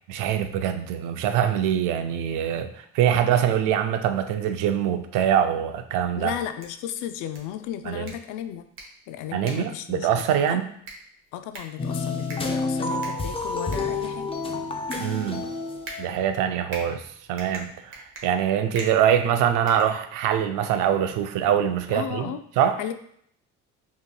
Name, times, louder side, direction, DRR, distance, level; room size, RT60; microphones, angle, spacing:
voice 1, 0.1-6.3 7.9-8.1 9.3-10.7 15.0-15.4 16.0-17.0 17.3-22.8, right 9 dB, 75° right, 8 dB, 0.5 m, -24 dB
voice 2, 6.2-8.6 9.1-10.6 11.3-14.3 21.9-22.4 22.8-22.9, left 10 dB, 70° left, 9 dB, 0.5 m, -34 dB
sound 1, 6.4-20.5, right 2 dB, 40° right, 1.2 m, -45 dB
sound 2, 11.8-16.4, left 3 dB, 20° left, 0.5 m, -29 dB
5.3 x 3.0 x 2.2 m, 0.67 s
supercardioid pair, 95°, 32 cm